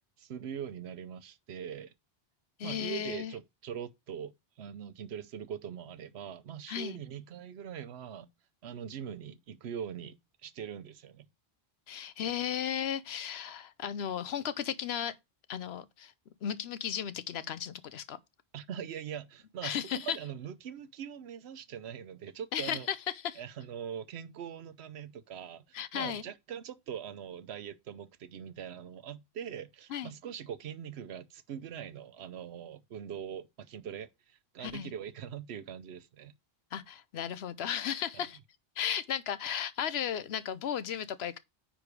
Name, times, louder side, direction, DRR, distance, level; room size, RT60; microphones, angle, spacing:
voice 1, 0.2-1.9 2.6-4.3 4.6-8.3 8.6-11.3 18.5-22.9 23.4-36.3 38.1-38.2, right 8 dB, 80° right, 1.0 m, -42 dB
voice 2, 2.6-3.3 6.7-7.0 11.9-15.1 15.5-16.1 16.4-18.2 19.6-20.2 22.5-23.0 23.2-23.4 25.7-26.2 29.9-30.1 34.6-34.9 36.7-38.4 38.8-41.4, left 9 dB, 80° left, 0.9 m, -35 dB
9.8 x 3.8 x 4.6 m
omnidirectional pair, 1.1 m